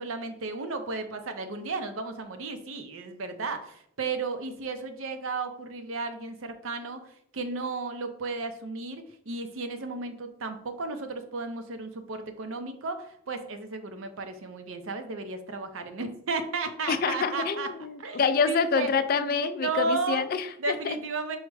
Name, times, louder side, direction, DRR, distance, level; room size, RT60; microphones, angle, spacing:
voice 1, 0.0-17.7 18.0-18.2 18.5-18.9 19.2-19.3 19.6-20.2 20.6-21.4, right 3 dB, 70° right, 7 dB, 0.6 m, -34 dB
voice 2, 16.9-21.0, left 5 dB, 45° left, 10 dB, 0.3 m, -27 dB
4.7 x 2.1 x 4.7 m, 0.67 s
head